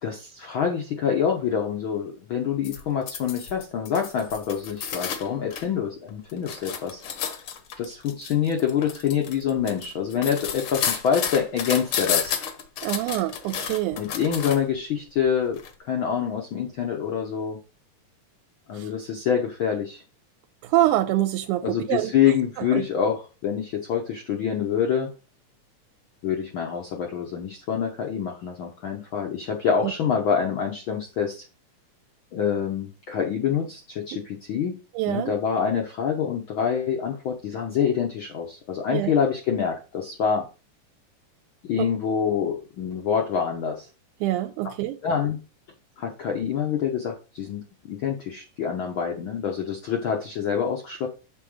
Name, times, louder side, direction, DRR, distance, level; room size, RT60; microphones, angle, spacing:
voice 1, 0.0-7.0 7.3-7.4 7.8-12.4 14.0-17.6 18.7-20.0 21.6-25.1 26.2-31.4 32.3-34.7 35.1-40.5 41.6-43.9 45.0-45.4 46.0-51.1, left 7 dB, 85° left, 1.1 m, -26 dB
sound 1, 2.6-5.7 6.1-14.8 15.6-15.7, left 8 dB, 70° left, 1.3 m, -31 dB
voice 2, 12.8-14.0 18.7-18.9 20.6-22.1 22.7-22.8 29.8-29.9 35.0-35.3 38.9-39.1 41.8-41.9 44.2-45.0, right 15 dB, 85° right, 2.0 m, -25 dB
7.4 x 3.8 x 6.4 m
omnidirectional pair, 3.6 m